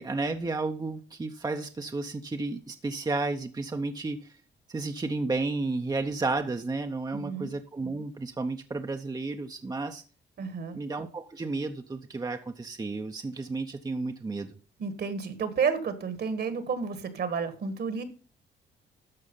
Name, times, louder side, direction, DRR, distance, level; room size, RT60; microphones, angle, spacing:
voice 1, 0.0-4.4 4.7-10.0 10.7-14.6, right 3 dB, 20° right, 0.8 m, -32 dB
voice 2, 7.1-7.5 10.4-10.8 14.8-18.0, right 5 dB, 55° right, 1.7 m, -31 dB
13.5 x 4.8 x 5.5 m
cardioid pair, 90°, 20 cm